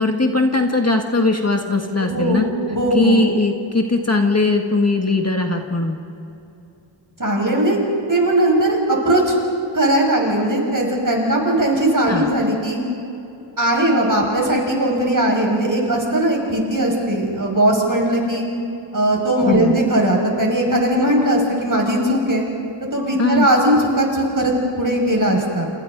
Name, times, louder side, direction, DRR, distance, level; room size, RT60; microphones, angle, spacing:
voice 1, 0.0-2.4 2.9-6.0 12.1-12.3 19.4-19.8 23.2-23.5, left 2 dB, 30° left, 3 dB, 1.7 m, -19 dB
voice 2, 2.0-3.2 7.2-7.8 8.1-9.4 9.7-12.8 13.6-18.4 18.9-22.4 22.9-25.7, right 1 dB, 40° right, 0 dB, 6.1 m, -19 dB
29.5 x 28.5 x 4.0 m, 2.8 s
wide cardioid pair, 65°, 49 cm